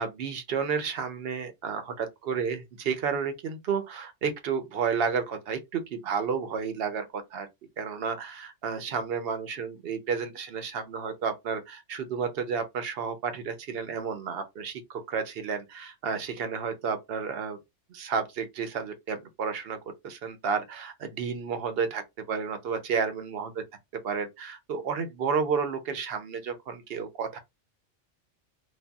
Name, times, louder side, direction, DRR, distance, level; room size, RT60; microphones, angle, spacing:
voice 1, 0.0-7.5 7.8-17.6 17.9-23.6 23.9-27.4, right 6 dB, 60° right, 0.8 m, -31 dB
3.4 x 2.2 x 2.2 m
omnidirectional pair, 1.3 m